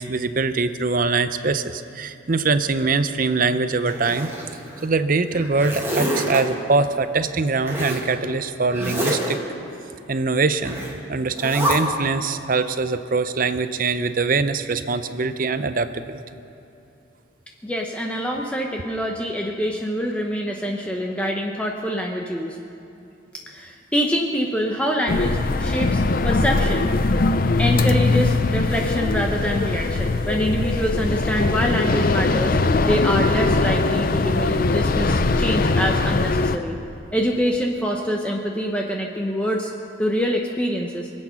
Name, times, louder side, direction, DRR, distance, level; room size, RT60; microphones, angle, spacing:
voice 1, 0.0-4.3 4.8-9.4 10.1-10.8 11.1-16.2, right 4 dB, 45° right, 11 dB, 0.6 m, -23 dB
Zipper (clothing), 3.9-4.8 5.3-6.4 7.7-8.1 8.7-9.3 10.6-10.9 11.3-11.7, equal, 10° right, 1.9 m, -27 dB
voice 2, 17.6-22.6 23.5-26.9 27.6-36.8 37.1-39.7 40.0-41.1, equal, 5° left, 0 dB, 0.7 m, -25 dB
sound 1, 25.1-36.6, left 3 dB, 45° left, 0.5 m, -21 dB
25.0 x 8.5 x 5.7 m, 2.8 s
head